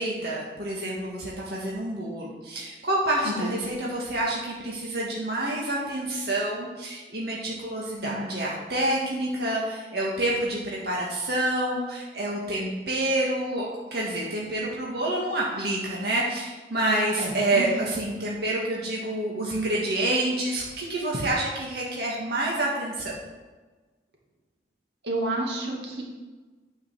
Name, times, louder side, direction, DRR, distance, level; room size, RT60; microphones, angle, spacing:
voice 1, 0.0-23.2, right 1 dB, 65° right, -5 dB, 1.9 m, -28 dB
voice 2, 3.2-3.6 8.0-8.4 17.2-17.8 19.3-19.4 25.0-26.0, right 1 dB, 85° right, -1 dB, 2.3 m, -30 dB
9.2 x 5.5 x 6.8 m, 1.3 s
head